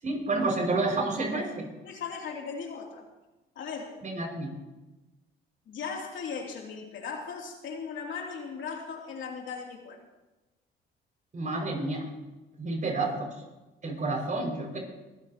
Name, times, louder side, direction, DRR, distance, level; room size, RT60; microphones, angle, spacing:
voice 1, 0.0-1.6 4.0-4.5 11.3-12.1 12.6-13.3 13.8-14.8, right 2 dB, 40° right, 1 dB, 5.9 m, -29 dB
voice 2, 1.8-3.0 3.5-4.0 5.7-10.0, left 5 dB, 65° left, 0 dB, 3.0 m, -38 dB
21.5 x 14.5 x 3.0 m, 1.1 s
cardioid pair, 85°, 21 cm